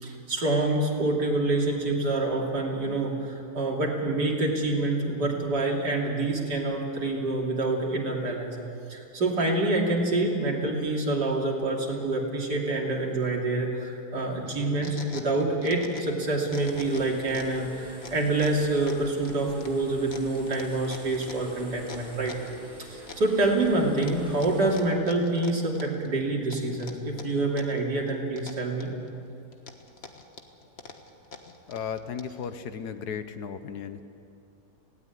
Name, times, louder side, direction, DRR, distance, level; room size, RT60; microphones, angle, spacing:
voice 1, 0.0-8.6 8.9-22.3 22.8-28.9, right 2 dB, 85° right, -1 dB, 3.5 m, -27 dB
sound 1, 14.4-23.2, right 2 dB, 55° right, 5.2 m, -47 dB
sound 2, 14.5-16.2 16.5-17.6 18.0-22.6 23.1-23.7 24.0-26.1 26.5-27.8 28.1-29.1 29.5-32.5, left 4 dB, 40° left, 1.6 m, -44 dB
sound 3, 16.5-24.8, equal, 5° left, 7.5 m, -50 dB
voice 2, 31.7-34.0, left 7 dB, 75° left, 10 dB, 1.5 m, -35 dB
18.5 x 17.0 x 9.5 m, 2.6 s
omnidirectional pair, 1.7 m